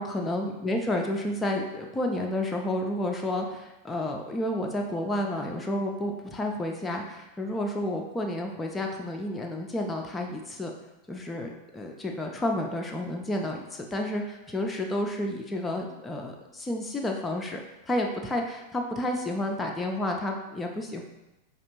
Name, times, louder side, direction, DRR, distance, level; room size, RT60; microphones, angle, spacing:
voice 1, 0.0-10.7 11.1-17.6 17.9-21.0, left 1 dB, 10° left, 1 dB, 0.4 m, -30 dB
4.9 x 2.4 x 2.9 m, 0.96 s
figure-of-eight pair, 90°, 0 cm